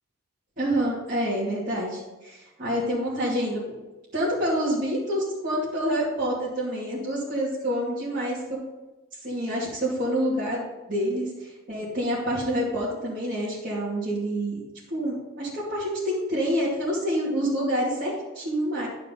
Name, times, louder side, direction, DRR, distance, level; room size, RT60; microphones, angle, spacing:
voice 1, 0.6-3.6 4.1-8.6 9.2-14.6 14.9-18.9, equal, 40° right, -10 dB, 2.5 m, -27 dB
11.5 x 4.8 x 5.4 m, 1.1 s
head